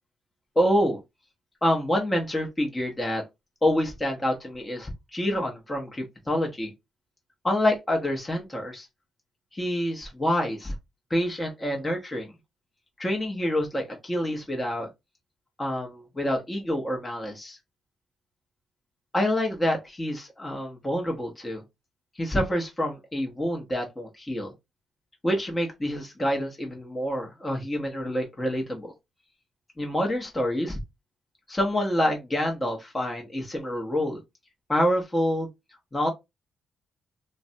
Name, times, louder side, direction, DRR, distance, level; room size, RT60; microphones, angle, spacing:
voice 1, 0.6-1.0 1.6-3.2 3.6-6.7 7.4-8.9 9.5-10.7 11.1-12.3 13.0-14.9 15.6-17.6 19.1-21.6 22.2-24.5 25.2-28.9 29.8-30.8 31.5-34.2 34.7-35.5 35.9-36.1, equal, 20° left, 0.8 m, -27 dB
2.5 x 2.1 x 2.6 m
supercardioid pair, 70°, 0 cm